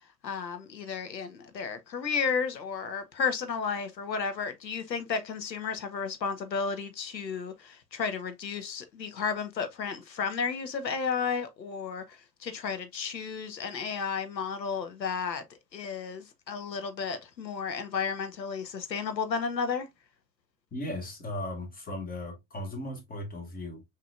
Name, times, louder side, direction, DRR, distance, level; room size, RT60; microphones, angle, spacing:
voice 1, 0.2-15.4 15.7-19.9, left 5 dB, 80° left, 0.9 m, -33 dB
voice 2, 20.7-23.8, left 1 dB, 15° left, 1.7 m, -37 dB
5.9 x 2.9 x 2.4 m
figure-of-eight pair, 80°, 50 cm